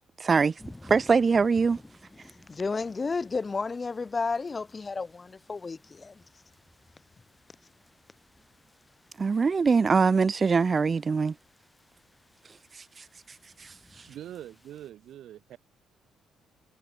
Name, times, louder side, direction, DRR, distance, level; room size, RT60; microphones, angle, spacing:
voice 1, 0.2-1.8 9.2-11.4 12.4-14.1, right 5 dB, 35° right, 0.3 m, -24 dB
sound 1, 0.6-14.9, left 1 dB, 10° left, 3.6 m, -55 dB
voice 2, 2.5-6.2, left 4 dB, 30° left, 0.6 m, -32 dB
voice 3, 14.1-15.6, right 11 dB, 75° right, 1.1 m, -43 dB
cardioid pair, 90°, 0 cm